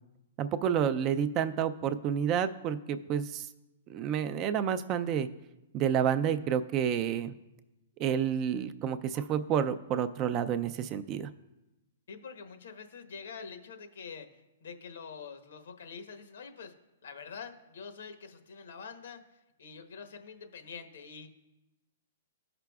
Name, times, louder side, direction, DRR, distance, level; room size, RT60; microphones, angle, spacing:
voice 1, 0.4-3.5 3.9-5.3 5.7-7.3 8.0-11.3, right 8 dB, 30° right, 11 dB, 0.4 m, -29 dB
voice 2, 12.1-16.7 17.0-19.2 19.6-21.3, left 5 dB, 75° left, 7 dB, 1.1 m, -46 dB
14.5 x 5.8 x 2.3 m, 1.0 s
hypercardioid pair, 145°, 0 cm